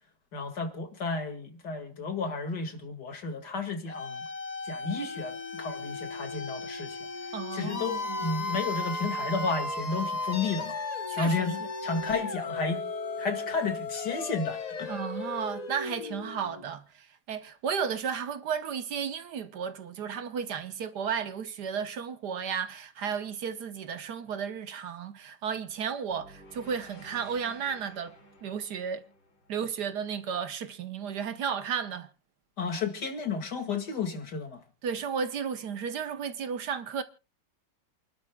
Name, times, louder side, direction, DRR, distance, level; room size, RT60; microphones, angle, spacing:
voice 1, 0.3-4.2 4.7-7.0 7.5-10.8 11.2-12.8 13.2-14.9 32.6-34.6, left 4 dB, 60° left, 2.6 m, -32 dB
sound 1, 3.9-16.7, left 3 dB, 40° left, 0.5 m, -35 dB
voice 2, 7.3-8.3 11.1-11.5 14.9-28.2 28.4-29.0 29.5-32.1 34.8-37.0, right 7 dB, 65° right, 1.4 m, -33 dB
sound 2, 26.1-30.3, equal, 80° left, 4.6 m, -53 dB
28.5 x 12.0 x 2.3 m
omnidirectional pair, 2.0 m